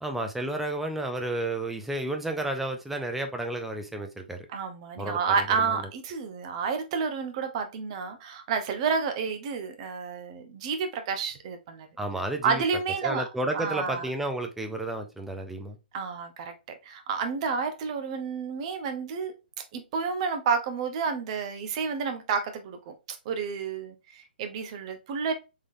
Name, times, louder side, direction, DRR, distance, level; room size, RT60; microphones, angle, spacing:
voice 1, 0.0-4.5 5.0-5.9 12.0-12.6 13.0-15.8, right 1 dB, 5° right, 0.4 m, -32 dB
voice 2, 4.5-11.9 12.4-13.3 13.5-14.1 15.9-16.5 16.8-19.3 19.7-25.3, right 5 dB, 35° right, 0.7 m, -30 dB
3.7 x 3.3 x 2.6 m
hypercardioid pair, 150°, 6 cm